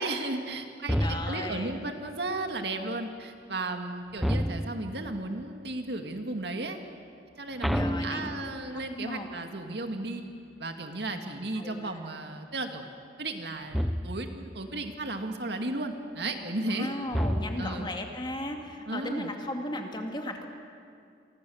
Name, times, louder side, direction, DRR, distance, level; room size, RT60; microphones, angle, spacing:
voice 1, 0.0-6.8 7.4-10.2 10.6-12.8 13.2-17.0 17.6-17.9 18.9-19.3, right 2 dB, 70° right, 5 dB, 2.2 m, -34 dB
sound 1, 0.9-1.6 4.2-5.0 7.6-8.8 13.7-14.4 17.1-17.9, equal, ahead, 0.8 m, -30 dB
voice 2, 1.0-1.8 7.7-8.3 8.9-9.3 11.6-12.0 16.6-20.5, left 1 dB, 25° left, 3 dB, 2.5 m, -36 dB
28.5 x 24.5 x 7.2 m, 2.4 s
head